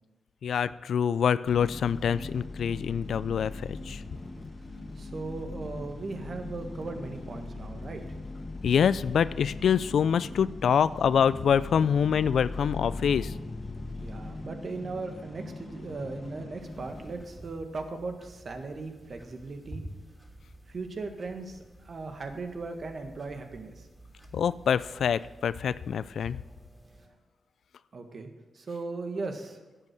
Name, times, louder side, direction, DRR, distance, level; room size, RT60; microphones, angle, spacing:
voice 1, 0.4-4.0 8.6-13.3 24.3-26.4, left 7 dB, 75° left, 17 dB, 0.3 m, -25 dB
sound 1, 1.5-17.1, left 2 dB, 35° left, 1.9 m, -40 dB
voice 2, 5.0-8.0 14.0-19.8 20.7-21.6 21.8-23.9 27.9-28.3 28.5-29.6, right 3 dB, 55° right, 5 dB, 1.6 m, -38 dB
sound 2, 16.6-27.1, right 1 dB, ahead, 3.1 m, -50 dB
10.5 x 8.2 x 6.6 m, 1.2 s
cardioid pair, 60°, 0 cm